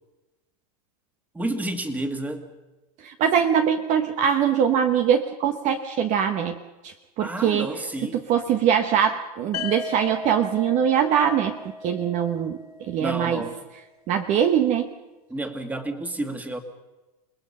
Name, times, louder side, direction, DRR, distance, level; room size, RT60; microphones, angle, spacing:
voice 1, 1.3-2.5 7.2-8.2 13.0-13.5 15.3-16.6, right 1 dB, 10° right, 6 dB, 2.0 m, -30 dB
voice 2, 3.0-6.6 6.8-7.7 8.1-11.6 11.8-12.6 12.9-13.4 14.1-14.9, right 8 dB, 40° right, 7 dB, 1.2 m, -22 dB
sound 1, 9.5-13.4, left 3 dB, 90° left, 2.0 m, -37 dB
28.0 x 19.5 x 5.6 m, 1.1 s
supercardioid pair, 135°, 19 cm